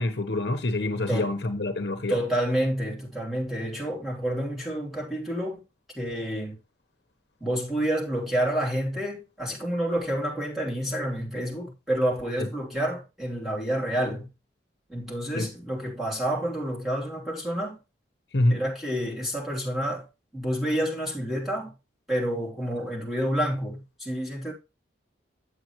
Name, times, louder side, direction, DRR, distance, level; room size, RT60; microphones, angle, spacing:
voice 1, 0.0-2.2 15.3-15.5 18.3-18.6, left 1 dB, 70° left, 1.1 m, -26 dB
voice 2, 2.1-5.6 5.9-6.6 7.4-14.3 14.9-17.8 18.5-20.0 20.3-21.7 22.1-24.5, right 1 dB, ahead, 3.0 m, -29 dB
8.4 x 7.6 x 3.1 m
head